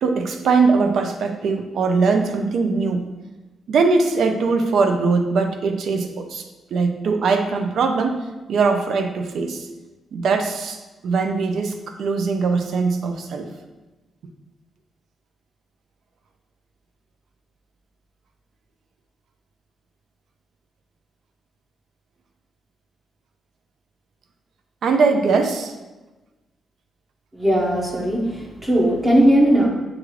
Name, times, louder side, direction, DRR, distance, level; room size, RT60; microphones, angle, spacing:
voice 1, 0.0-3.0 3.7-6.4 6.7-8.2 8.5-9.7 10.1-10.8 11.0-13.5 24.8-25.7, right 4 dB, 65° right, 5 dB, 0.4 m, -21 dB
voice 2, 27.3-29.7, right 1 dB, 20° right, -2 dB, 0.7 m, -18 dB
6.3 x 2.4 x 3.1 m, 1.1 s
wide cardioid pair, 155°, 0 cm